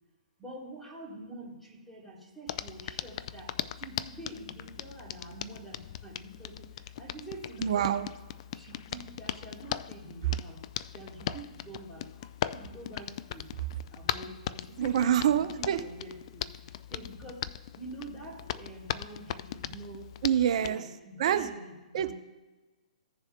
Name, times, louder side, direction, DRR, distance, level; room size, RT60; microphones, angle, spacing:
voice 1, 0.4-8.0 8.5-10.6 10.9-13.5 13.9-16.5 16.9-17.5 17.8-20.1 20.6-22.1, right 2 dB, 5° left, -4 dB, 2.8 m, -46 dB
Hands, 2.5-20.8, left 11 dB, 45° left, 0.3 m, -39 dB
voice 2, 7.6-8.1 14.8-15.8 20.2-20.8 21.2-21.5 21.9-22.1, right 9 dB, 50° right, 10 dB, 0.7 m, -26 dB
15.5 x 7.0 x 2.2 m, 1.2 s
figure-of-eight pair, 120°, 4 cm